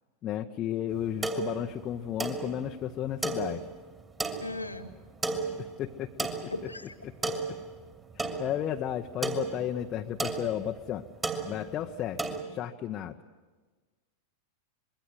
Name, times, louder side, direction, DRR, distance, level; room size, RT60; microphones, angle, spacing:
voice 1, 0.2-3.7 5.6-6.5 7.0-7.3 8.1-11.1 11.4-13.2, left 10 dB, 30° left, 3 dB, 0.8 m, -33 dB
sound 1, 0.9-12.4, right 3 dB, 15° right, 2.6 m, -35 dB
voice 2, 4.4-4.9 6.5-6.9, left 2 dB, 85° left, 9 dB, 1.8 m, -37 dB
26.0 x 22.5 x 7.7 m, 1.3 s
figure-of-eight pair, 90°, 0 cm